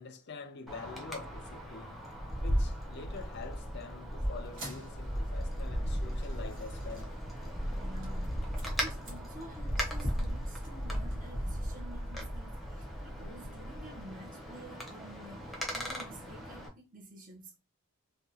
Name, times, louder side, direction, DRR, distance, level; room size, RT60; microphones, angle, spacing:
voice 1, 0.0-2.0 2.4-7.2, left 4 dB, 50° left, 0.4 m, -46 dB
Wind, 0.7-16.7, equal, ahead, 0.7 m, -36 dB
sound 1, 4.4-14.0, equal, 60° right, 1.4 m, -48 dB
voice 2, 7.8-17.6, right 1 dB, 40° right, 0.8 m, -51 dB
3.5 x 2.2 x 2.7 m
head